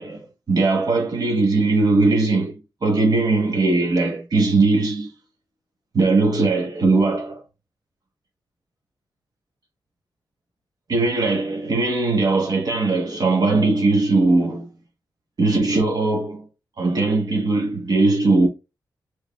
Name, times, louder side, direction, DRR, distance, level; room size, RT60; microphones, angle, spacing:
voice 1, 0.0-5.1 5.9-7.4 10.9-14.7 15.4-16.4 16.8-18.5, right 3 dB, 50° right, 1.0 m, -20 dB
4.8 x 3.0 x 2.2 m
cardioid pair, 85°, 8 cm